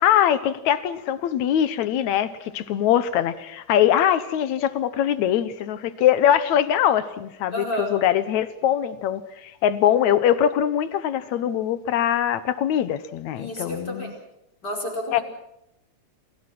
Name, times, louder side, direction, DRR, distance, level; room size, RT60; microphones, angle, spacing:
voice 1, 0.0-14.1 15.1-15.2, left 10 dB, 70° left, 13 dB, 2.3 m, -22 dB
voice 2, 7.5-8.0 13.3-14.2 14.6-15.2, left 1 dB, 30° left, 1 dB, 5.5 m, -30 dB
28.5 x 18.0 x 6.1 m, 0.84 s
omnidirectional pair, 3.6 m